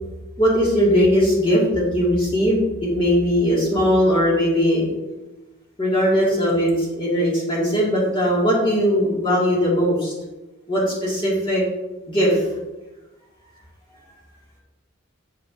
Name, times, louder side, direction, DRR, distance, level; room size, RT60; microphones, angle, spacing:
voice 1, 0.4-4.9 5.8-10.1 10.7-11.6 12.1-12.5, equal, 25° left, -6 dB, 1.8 m, -19 dB
8.4 x 7.9 x 2.5 m, 1.1 s
head